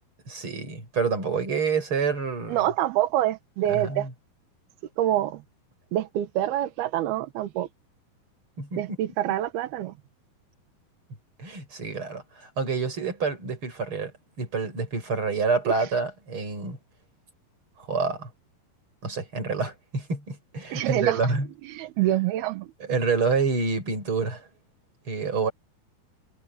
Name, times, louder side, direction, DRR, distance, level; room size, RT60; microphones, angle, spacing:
voice 1, 0.3-2.6 3.7-4.1 8.6-9.0 11.4-14.1 14.4-16.8 17.8-18.3 19.0-21.5 22.8-24.5 25.1-25.5, right 4 dB, 30° right, 7.8 m, -27 dB
voice 2, 2.5-4.1 5.0-5.4 5.9-7.7 8.8-9.9 15.8-15.9 20.7-21.3 21.6-22.7, right 13 dB, 80° right, 3.1 m, -26 dB
omnidirectional pair, 4.5 m